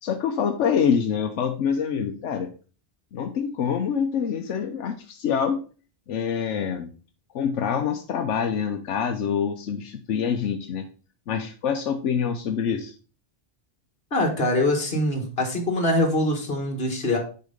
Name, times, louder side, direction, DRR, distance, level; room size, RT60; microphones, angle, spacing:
voice 1, 0.0-2.5 3.1-5.6 6.1-6.9 7.3-10.9 11.3-12.9, left 7 dB, 90° left, 5 dB, 1.1 m, -26 dB
voice 2, 14.1-17.2, left 1 dB, 55° left, 3 dB, 2.0 m, -23 dB
6.6 x 5.0 x 5.1 m, 0.38 s
omnidirectional pair, 1.2 m